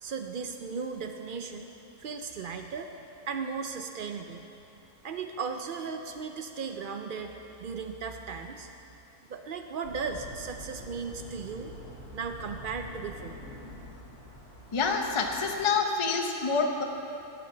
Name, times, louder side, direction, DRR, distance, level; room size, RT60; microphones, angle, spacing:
voice 1, 0.0-1.7 2.0-2.9 3.3-4.4 5.0-7.3 7.6-8.7 9.3-11.7 12.1-13.4, right 5 dB, 85° right, 5 dB, 0.4 m, -36 dB
sound 1, 9.8-15.6, left 1 dB, 90° left, 3.4 m, -46 dB
voice 2, 14.7-16.8, left 4 dB, 30° left, 3 dB, 0.6 m, -27 dB
16.0 x 5.9 x 6.8 m, 2.8 s
omnidirectional pair, 1.6 m